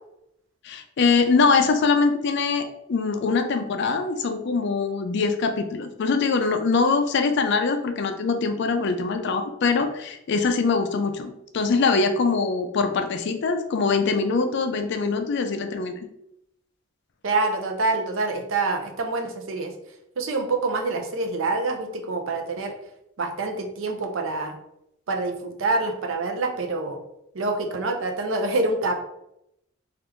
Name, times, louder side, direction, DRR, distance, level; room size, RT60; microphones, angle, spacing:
voice 1, 0.6-16.0, left 4 dB, 60° left, 7 dB, 0.4 m, -23 dB
voice 2, 17.2-19.7 20.2-22.7 23.2-24.6 25.1-27.0 27.3-29.0, right 3 dB, 80° right, 4 dB, 0.6 m, -26 dB
3.3 x 2.4 x 3.0 m, 0.81 s
head